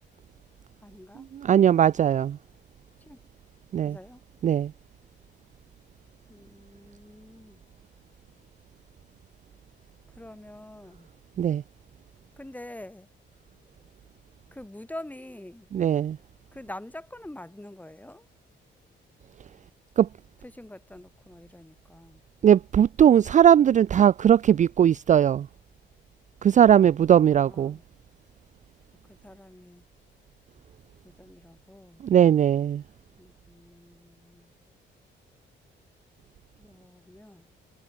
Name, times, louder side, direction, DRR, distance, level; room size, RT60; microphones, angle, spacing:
voice 1, 0.8-1.3 3.1-3.2 3.8-4.2 6.3-7.6 10.1-11.1 12.4-13.1 14.5-15.7 16.5-18.3 20.4-22.2 27.3-27.8 29.1-29.8 31.0-32.0 33.2-34.5 36.6-37.5, left 1 dB, 10° left, 6.4 m, -45 dB
voice 2, 1.5-2.4 3.7-3.9 4.4-4.7 11.4-11.6 15.7-16.2 20.0-20.1 22.4-25.5 26.4-27.8 32.0-32.8, right 9 dB, 40° right, 0.4 m, -19 dB
cardioid pair, 90°, 20 cm